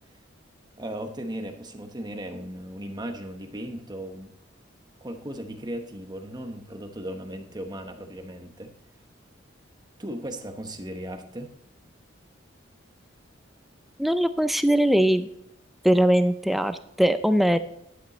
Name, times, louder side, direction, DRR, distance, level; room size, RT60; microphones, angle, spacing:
voice 1, 0.8-4.3 5.0-8.7 10.0-11.5, right 1 dB, 20° right, 5 dB, 1.1 m, -36 dB
voice 2, 14.0-15.3 15.8-17.6, equal, ahead, 10 dB, 0.3 m, -21 dB
11.5 x 7.6 x 3.1 m, 0.76 s
head